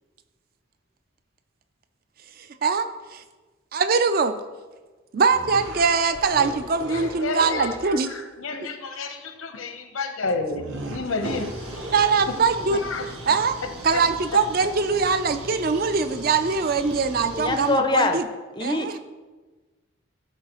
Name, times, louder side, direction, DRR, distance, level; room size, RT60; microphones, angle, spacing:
voice 1, 2.4-3.2 3.7-4.4 5.1-8.1 11.9-12.8 13.3-13.6 13.8-18.3 18.6-19.0, right 5 dB, 45° right, 10 dB, 0.4 m, -22 dB
sound 1, 5.3-7.9 10.5-12.8, right 1 dB, 65° right, 1.0 m, -36 dB
voice 2, 6.9-11.9 12.3-12.4 12.7-13.1 13.9-14.0, left 3 dB, 85° left, 6 dB, 0.9 m, -31 dB
sound 2, 11.2-17.7, right 1 dB, 85° right, 1.5 m, -40 dB
voice 3, 17.3-18.2 18.6-19.0, left 3 dB, 20° left, 6 dB, 0.5 m, -24 dB
13.5 x 4.7 x 3.0 m, 1.3 s
head